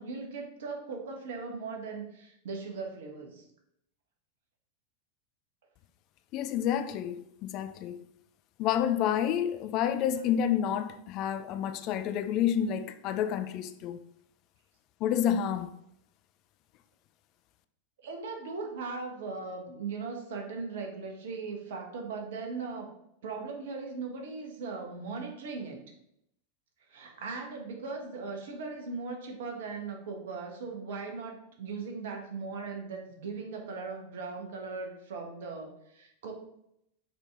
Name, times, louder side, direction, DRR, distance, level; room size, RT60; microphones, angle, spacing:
voice 1, 0.0-3.4 18.0-22.9 23.2-25.8 26.9-36.3, right 4 dB, 55° right, 1.3 m, -39 dB
voice 2, 6.3-8.0 8.6-14.0 15.0-15.7, left 9 dB, 40° left, 0.4 m, -29 dB
5.8 x 4.4 x 3.6 m
figure-of-eight pair, 90°, 0 cm